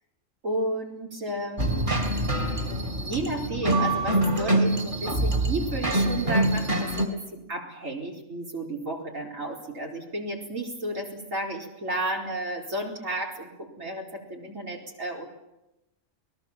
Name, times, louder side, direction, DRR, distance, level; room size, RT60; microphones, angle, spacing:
voice 1, 0.4-2.0 3.0-15.3, right 1 dB, 80° right, -1 dB, 4.9 m, -33 dB
sound 1, 1.6-7.1, right 1 dB, 40° right, 3.2 m, -25 dB
29.0 x 20.0 x 7.5 m, 0.92 s
omnidirectional pair, 1.3 m